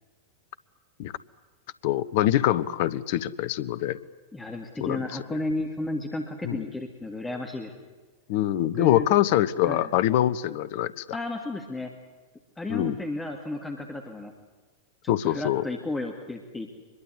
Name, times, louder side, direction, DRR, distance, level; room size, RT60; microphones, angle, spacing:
voice 1, 1.8-4.0 4.8-5.0 5.3-5.4 6.4-6.6 8.3-11.2 12.7-13.0 15.1-15.7, left 13 dB, 50° left, 17 dB, 0.9 m, -24 dB
voice 2, 4.3-7.7 8.8-9.1 9.6-9.9 11.1-11.9 12.6-14.3 15.0-16.7, left 2 dB, 10° left, 3 dB, 2.3 m, -33 dB
24.5 x 22.0 x 8.4 m, 1.3 s
figure-of-eight pair, 90°, 0 cm